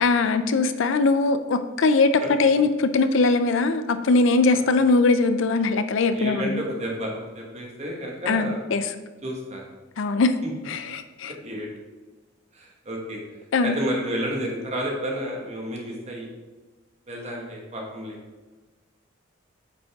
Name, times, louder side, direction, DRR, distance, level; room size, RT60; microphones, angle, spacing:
voice 1, 0.0-6.6 8.3-8.9 10.0-10.3 10.7-11.3 13.5-13.8, left 3 dB, 65° left, 10 dB, 0.4 m, -21 dB
voice 2, 6.1-8.6 9.2-9.6 11.4-11.7 12.5-13.2 13.6-16.3 17.1-18.2, equal, 30° right, 0 dB, 1.4 m, -31 dB
8.4 x 5.3 x 3.5 m, 1.3 s
head